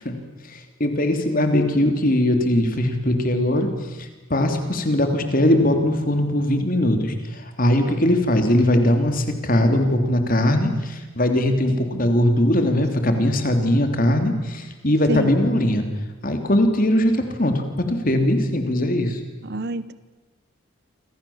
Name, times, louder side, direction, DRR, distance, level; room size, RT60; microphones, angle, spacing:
voice 1, 0.5-3.7 4.0-15.8 16.2-19.2, left 1 dB, 40° left, 6 dB, 3.2 m, -20 dB
voice 2, 19.4-19.9, right 2 dB, 50° right, 15 dB, 0.9 m, -27 dB
28.5 x 26.0 x 7.3 m, 1.2 s
head